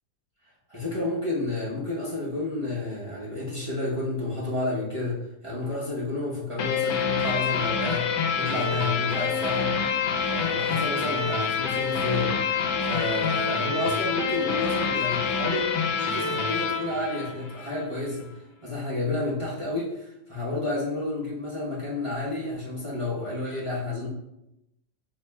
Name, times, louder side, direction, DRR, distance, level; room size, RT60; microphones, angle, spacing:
voice 1, 0.7-5.2 5.4-9.7 10.2-12.4 12.8-18.3 18.6-24.1, left 2 dB, 35° right, -7 dB, 0.5 m, -30 dB
sound 1, 6.6-17.9, left 6 dB, 80° left, 1.2 m, -27 dB
3.3 x 3.0 x 4.1 m, 0.86 s
omnidirectional pair, 1.9 m